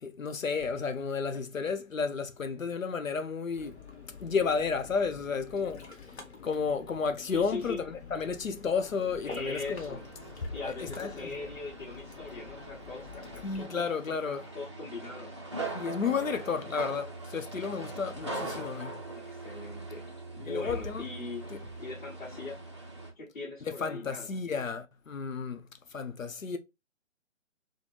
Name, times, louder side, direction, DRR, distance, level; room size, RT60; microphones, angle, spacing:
voice 1, 0.0-3.8 4.2-5.8 6.4-10.0 10.4-10.5 10.8-11.3 13.4-14.4 15.7-19.0 20.5-21.0 23.8-25.6 25.9-26.6, left 5 dB, 80° left, 0.7 m, -32 dB
Ocean, 3.5-13.6, left 5 dB, 55° left, 1.0 m, -48 dB
voice 2, 7.3-7.8 9.2-10.0 10.5-15.3 19.1-20.0 20.3-21.5 21.8-22.6 23.2-24.4, left 3 dB, 40° left, 1.6 m, -40 dB
construction site, 9.2-23.1, right 2 dB, 25° right, 0.4 m, -42 dB
3.5 x 2.1 x 3.0 m
figure-of-eight pair, 140°, 39 cm